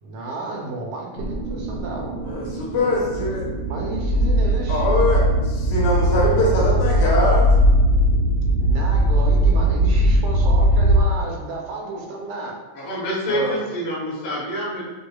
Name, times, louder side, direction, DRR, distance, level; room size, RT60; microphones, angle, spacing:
voice 1, 0.0-2.6 3.7-4.8 8.6-12.6, right 2 dB, 90° right, 0 dB, 2.2 m, -32 dB
sound 1, 1.2-11.0, right 1 dB, 70° right, 1.4 m, -19 dB
voice 2, 2.3-3.4 4.7-7.5 13.3-13.6, left 1 dB, 80° left, -5 dB, 2.2 m, -22 dB
voice 3, 12.7-14.8, equal, 60° left, -6 dB, 1.6 m, -27 dB
6.6 x 2.4 x 2.2 m, 1.3 s
omnidirectional pair, 3.4 m